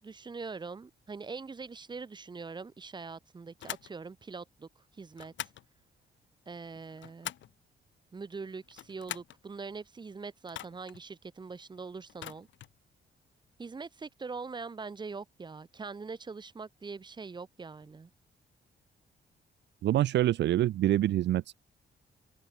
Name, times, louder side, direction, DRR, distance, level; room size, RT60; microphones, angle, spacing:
voice 1, 0.0-5.3 6.5-7.3 8.1-12.5 13.6-18.1, right 4 dB, 25° right, 6.8 m, -43 dB
sound 1, 3.6-3.9 5.2-5.7 6.7-7.6 8.6-9.4 10.5-11.0 12.1-12.8, left 11 dB, 80° left, 7.7 m, -43 dB
voice 2, 19.8-21.5, right 13 dB, 70° right, 0.6 m, -26 dB
wide cardioid pair, 180°, 19 cm